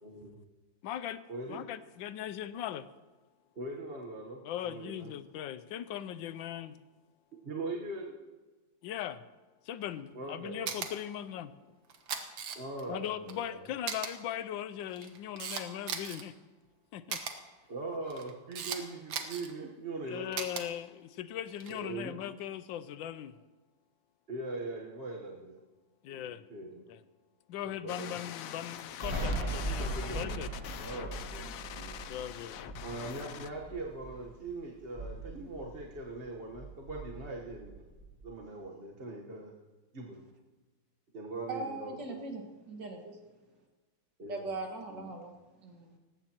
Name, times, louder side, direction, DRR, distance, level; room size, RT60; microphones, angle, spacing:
voice 1, 0.0-0.4 1.3-1.6 3.5-5.1 7.4-8.1 10.1-10.7 12.5-13.6 17.7-20.3 21.7-22.2 24.3-25.6 26.1-26.8 27.6-28.2 29.8-30.3 30.8-31.5 31.7-32.0 32.8-37.8 38.2-39.5 39.9-40.2 41.1-42.2 44.2-44.5 44.9-45.2, right 2 dB, 35° right, -1 dB, 1.3 m, -41 dB
voice 2, 0.8-1.2 1.5-2.9 4.4-6.8 8.8-9.2 9.6-11.7 12.9-16.3 16.9-17.2 20.1-23.5 26.0-26.5 26.9-27.0 27.5-30.5 32.1-32.6, left 11 dB, 90° left, 13 dB, 1.4 m, -39 dB
Camera, 10.7-10.9 11.9-12.8 13.3-13.4 13.9-14.1 14.8-16.2 17.1-17.3 18.1-18.8 19.1-19.5 20.3-20.6 21.5-21.8, right 7 dB, 90° right, 2.0 m, -37 dB
sound 1, 27.9-33.5, left 10 dB, 70° left, 0.8 m, -44 dB
Thunder, 29.0-34.4 34.8-36.3 36.5-38.2, right 1 dB, 15° right, 6.2 m, -39 dB
voice 3, 41.5-43.2 44.3-45.3 45.6-46.0, right 3 dB, 70° right, 1 dB, 2.5 m, -40 dB
18.5 x 16.0 x 3.0 m, 1.3 s
omnidirectional pair, 2.0 m